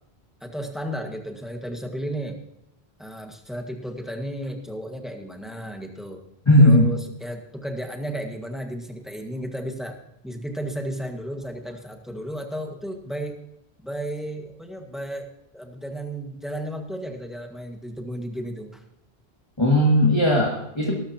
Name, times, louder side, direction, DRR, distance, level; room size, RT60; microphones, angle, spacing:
voice 1, 0.4-2.4 3.0-6.2 6.6-10.0 10.2-13.4 13.8-18.8, equal, ahead, 3 dB, 1.7 m, -33 dB
voice 2, 6.5-6.9 19.6-20.9, left 1 dB, 25° left, -2 dB, 2.2 m, -17 dB
19.0 x 13.0 x 2.9 m, 0.79 s
omnidirectional pair, 1.1 m